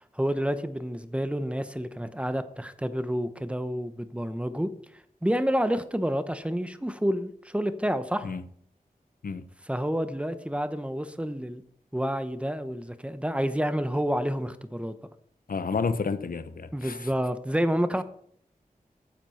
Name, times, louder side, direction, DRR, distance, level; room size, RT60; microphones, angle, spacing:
voice 1, 0.1-4.7 5.2-8.3 9.7-11.6 11.9-15.0 16.7-18.0, equal, 10° right, 1.0 m, -29 dB
voice 2, 15.5-17.1, left 4 dB, 75° left, 0.8 m, -30 dB
9.6 x 7.4 x 5.8 m
cardioid pair, 50°, 15 cm